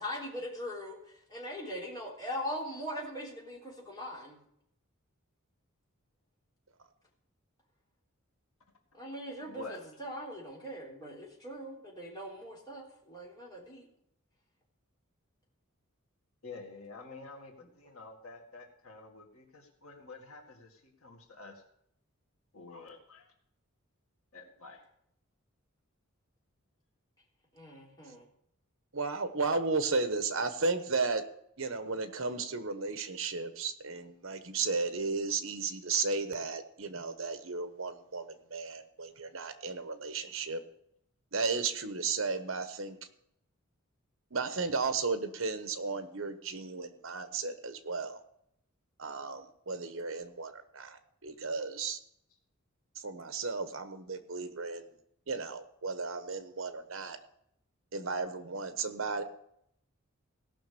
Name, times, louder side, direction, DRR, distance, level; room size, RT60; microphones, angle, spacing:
voice 1, 0.0-4.4 8.9-13.9 27.5-28.2, equal, 20° left, -4 dB, 3.5 m, -41 dB
voice 2, 9.4-9.8 16.4-21.6 22.5-23.3 24.3-24.9, left 3 dB, 80° left, 2 dB, 2.1 m, -49 dB
voice 3, 28.9-31.2 31.6-40.6 41.3-43.0 44.3-48.2 49.0-52.0 52.9-54.9 55.3-57.2 57.9-59.2, right 4 dB, 65° right, 9 dB, 1.2 m, -34 dB
16.5 x 6.2 x 6.8 m, 0.72 s
head